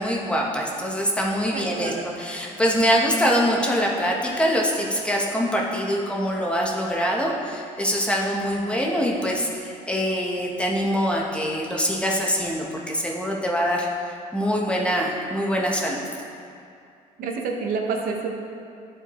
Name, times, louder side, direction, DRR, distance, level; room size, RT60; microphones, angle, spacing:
voice 1, 0.0-16.0, equal, 5° left, -2 dB, 0.8 m, -24 dB
voice 2, 1.5-2.0 17.2-18.4, right 4 dB, 75° right, 2 dB, 0.8 m, -28 dB
10.5 x 4.5 x 3.0 m, 2.4 s
cardioid pair, 130°, 15 cm